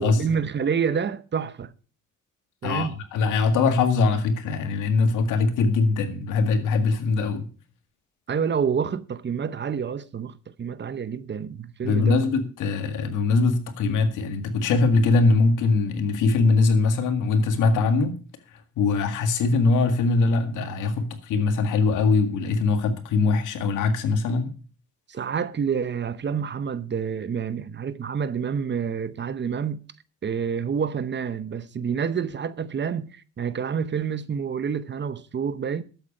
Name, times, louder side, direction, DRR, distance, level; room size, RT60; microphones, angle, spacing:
voice 1, 0.0-1.7 2.6-3.0 8.3-12.2 25.1-29.8 30.2-35.8, right 7 dB, 35° right, 0.8 m, -28 dB
voice 2, 2.6-7.5 11.8-18.2 18.8-24.5, left 4 dB, 90° left, 2.0 m, -22 dB
12.5 x 8.2 x 5.4 m
cardioid pair, 90°, 30 cm